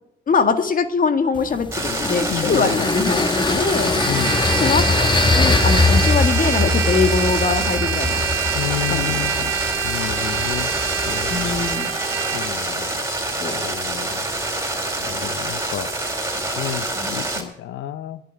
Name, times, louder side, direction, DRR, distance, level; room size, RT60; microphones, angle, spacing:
voice 1, 0.3-3.2 3.5-4.0 4.5-8.2 8.9-9.5 11.3-11.9 13.4-13.7 17.0-17.2, left 4 dB, 45° left, 9 dB, 1.9 m, -22 dB
sound 1, 1.3-11.8, left 3 dB, 25° left, 1.1 m, -22 dB
sound 2, 1.7-17.4, right 2 dB, 15° right, 4.1 m, -26 dB
voice 2, 2.3-2.8 4.1-4.4 8.5-9.5 9.8-10.7 11.1-11.6 12.3-12.9 13.6-14.2 15.0-15.9 16.5-16.9 17.1-18.2, left 13 dB, 80° left, 13 dB, 0.7 m, -30 dB
Trumpet, 4.0-12.5, right 10 dB, 85° right, 3.0 m, -27 dB
11.0 x 10.0 x 9.2 m, 0.78 s
cardioid pair, 90°, 20 cm